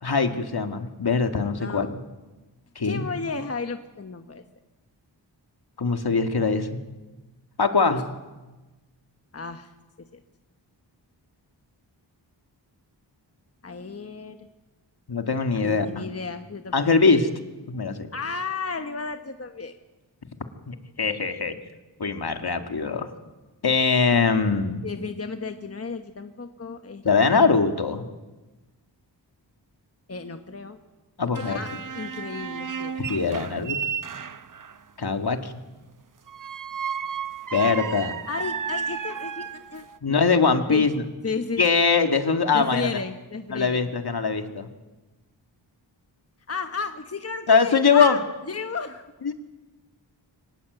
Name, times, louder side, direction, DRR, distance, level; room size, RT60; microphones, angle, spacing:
voice 1, 0.0-1.9 2.8-3.1 5.8-6.7 7.6-8.0 15.1-16.1 16.7-17.3 17.7-18.1 20.7-21.6 22.0-23.1 23.6-24.8 27.0-28.1 31.2-31.6 33.0-33.8 35.0-35.6 37.5-38.1 40.0-40.9 41.6-42.9 43.5-44.7 47.5-48.2 49.2-49.3, left 4 dB, 60° left, 6 dB, 2.1 m, -22 dB
voice 2, 1.6-1.9 2.8-4.4 7.9-8.0 9.3-9.7 13.6-14.5 15.5-16.8 18.1-19.7 24.8-27.4 30.1-30.8 31.3-31.7 31.9-32.9 38.3-40.2 40.7-40.9 41.2-41.6 42.5-43.9 46.5-48.2 48.5-49.0, left 4 dB, 35° left, 7 dB, 1.2 m, -33 dB
sound 1, 31.3-34.8 36.3-40.0, right 7 dB, 45° right, 0.9 m, -33 dB
24.5 x 19.0 x 8.0 m, 1.2 s
wide cardioid pair, 95°, 44 cm